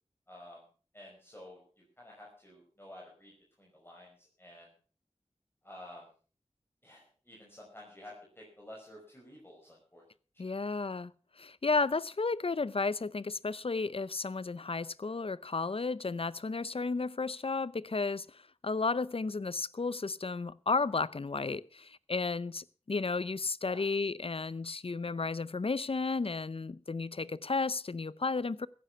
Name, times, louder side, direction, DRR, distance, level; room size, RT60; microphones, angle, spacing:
voice 1, 0.3-0.6 0.9-3.3 3.6-4.7 5.6-6.1 6.8-10.0 10.3-10.7 23.6-23.9, left 1 dB, 20° left, 5.4 m, -52 dB
voice 2, 10.4-11.1 11.4-18.3 18.6-28.7, left 4 dB, 55° left, 0.6 m, -33 dB
16.0 x 10.5 x 5.6 m
wide cardioid pair, 50°, 12 cm